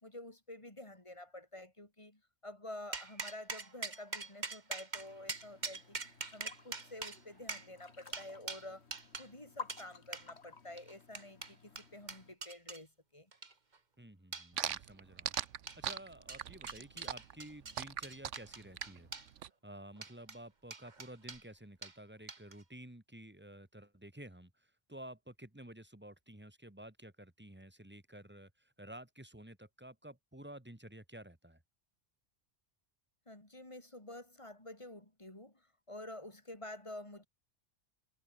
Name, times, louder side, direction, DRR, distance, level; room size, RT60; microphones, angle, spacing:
voice 1, 0.0-8.9 9.2-13.3 16.8-17.1 33.3-37.3, left 1 dB, 25° left, 3.4 m, -50 dB
sound 1, 2.9-9.3 9.7-9.8 10.1-10.3 10.8-12.8 13.3-13.8 14.3-14.8 15.3-16.0 16.3-19.3 19.9-20.4 20.7-21.4 21.8-22.0 22.3-22.6, right 4 dB, 40° right, 1.7 m, -44 dB
sound 2, 4.9-12.4, left 5 dB, 65° left, 2.0 m, -54 dB
voice 2, 14.0-15.3 15.8-19.1 19.6-31.6, right 1 dB, 10° right, 1.9 m, -52 dB
sound 3, 14.6-19.5, right 10 dB, 85° right, 1.2 m, -39 dB
omnidirectional pair, 1.2 m